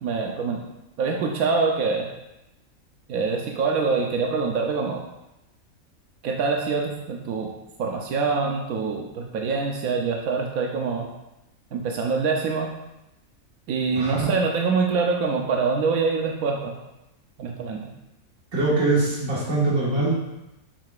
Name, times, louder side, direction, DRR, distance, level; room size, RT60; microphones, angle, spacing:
voice 1, 0.0-0.6 1.0-2.1 3.1-5.0 6.2-7.5 7.8-11.1 11.7-12.7 13.7-16.7 17.4-17.8, right 4 dB, 90° right, 0 dB, 1.2 m, -25 dB
voice 2, 14.0-14.3 18.5-20.2, right 2 dB, 70° right, -7 dB, 2.1 m, -23 dB
7.6 x 6.5 x 2.4 m, 0.93 s
omnidirectional pair, 1.5 m